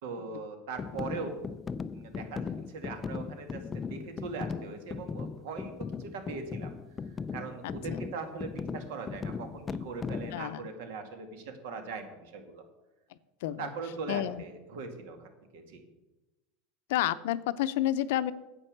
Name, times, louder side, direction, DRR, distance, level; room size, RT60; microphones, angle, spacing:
voice 1, 0.0-1.4 1.9-3.6 3.9-5.7 6.0-6.7 7.3-12.6 13.6-15.8, right 4 dB, 75° right, 6 dB, 2.2 m, -40 dB
sound 1, 0.8-10.4, left 5 dB, 15° left, 0.3 m, -38 dB
voice 2, 7.6-8.0 10.3-10.7 13.4-13.7 14.1-14.4 16.9-18.3, left 13 dB, 75° left, 14 dB, 0.6 m, -30 dB
9.8 x 8.2 x 6.7 m, 1.0 s
supercardioid pair, 155°, 0 cm